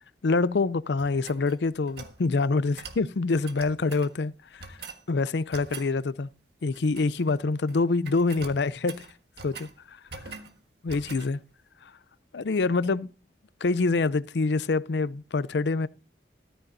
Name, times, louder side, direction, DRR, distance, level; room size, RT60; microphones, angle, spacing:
voice 1, 0.2-4.8 5.1-6.3 6.6-9.0 9.4-9.7 10.8-11.4 12.3-13.1 13.6-15.9, left 3 dB, 80° left, 0.5 m, -26 dB
sound 1, 1.0-2.2 2.8-3.0 3.4-4.1 4.6-5.0 5.5-5.9 6.7-7.3 7.6-7.8 8.0-9.7 10.1-10.5 10.9-11.3, right 4 dB, 70° right, 1.5 m, -43 dB
14.0 x 13.5 x 2.7 m
head